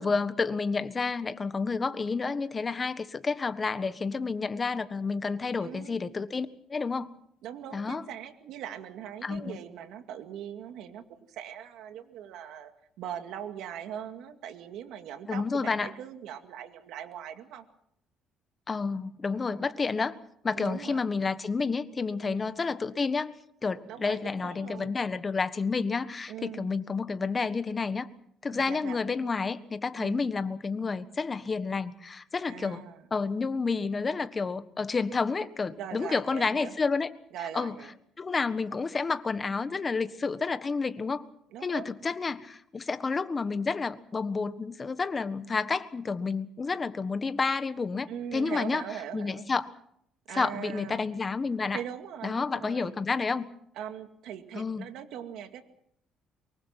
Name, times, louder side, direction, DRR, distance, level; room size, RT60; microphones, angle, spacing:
voice 1, 0.0-7.1 7.7-8.0 9.2-9.6 15.3-15.9 18.7-20.1 20.4-23.3 23.6-28.1 28.4-37.1 37.5-37.7 38.2-41.2 41.6-48.8 49.1-49.7 50.3-51.8 52.2-53.4 54.5-54.9, left 4 dB, 25° left, 12 dB, 1.5 m, -30 dB
voice 2, 5.6-6.0 7.4-12.7 13.0-17.7 19.4-19.6 20.5-21.1 22.2-22.5 23.9-24.9 26.3-26.7 28.5-29.0 30.0-30.3 32.4-33.0 35.8-36.8 37.3-37.9 41.5-41.9 48.1-49.5 50.3-51.0 51.7-52.9 53.8-55.6, right 9 dB, 75° right, 7 dB, 2.2 m, -41 dB
24.0 x 23.5 x 6.0 m, 0.71 s
cardioid pair, 120°, 0 cm